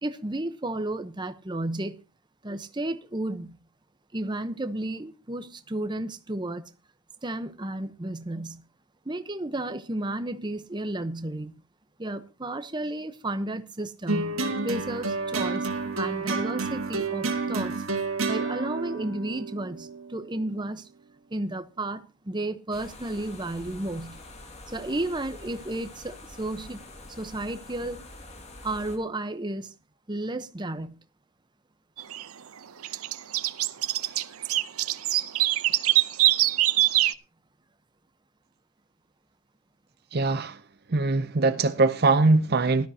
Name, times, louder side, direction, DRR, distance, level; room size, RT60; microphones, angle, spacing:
voice 1, 0.0-2.0 2.4-3.6 4.1-6.7 7.2-8.6 9.0-11.5 12.0-15.7 16.0-17.8 18.3-20.9 21.3-24.2 24.7-26.9 27.2-28.0 28.6-29.7 30.1-31.0, right 1 dB, 20° right, 0.9 m, -32 dB
sound 1, 14.1-20.5, right 3 dB, 70° right, 1.9 m, -30 dB
sound 2, 22.7-29.0, left 2 dB, 30° left, 2.2 m, -45 dB
sound 3, 32.0-32.2 32.8-37.1, right 15 dB, 90° right, 0.7 m, -23 dB
voice 2, 40.1-40.6 40.9-42.9, right 3 dB, 45° right, 0.6 m, -22 dB
17.5 x 13.0 x 2.8 m
head